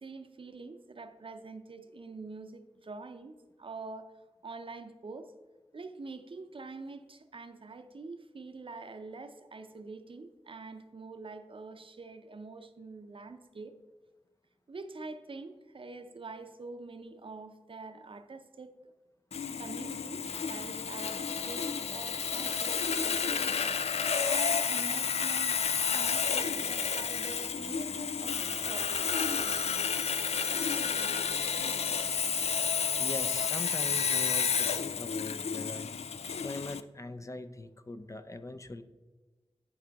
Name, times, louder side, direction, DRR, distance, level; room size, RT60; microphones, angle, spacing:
voice 1, 0.0-4.1 4.4-5.3 5.7-13.7 14.7-18.7 19.6-23.6 24.3-25.6 25.9-29.0, right 3 dB, 55° right, 8 dB, 0.7 m, -45 dB
Sawing, 19.3-36.8, left 6 dB, 90° left, 0.4 m, -31 dB
voice 2, 33.0-35.9 36.4-38.8, left 2 dB, 30° left, 9 dB, 0.5 m, -41 dB
11.0 x 5.0 x 3.5 m, 1.2 s
wide cardioid pair, 75°, 10 cm